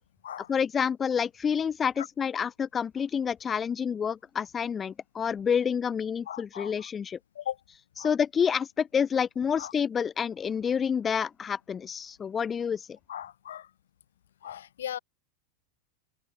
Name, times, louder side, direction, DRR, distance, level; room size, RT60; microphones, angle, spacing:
voice 1, 0.5-7.2 8.0-12.9, left 7 dB, 25° left, 1.5 m, -28 dB
voice 2, 6.3-6.8 7.3-7.6 8.0-8.1 9.6-9.7 13.1-13.7 14.4-15.0, left 10 dB, 85° left, 5.1 m, -38 dB
open air
hypercardioid pair, 105°, 0 cm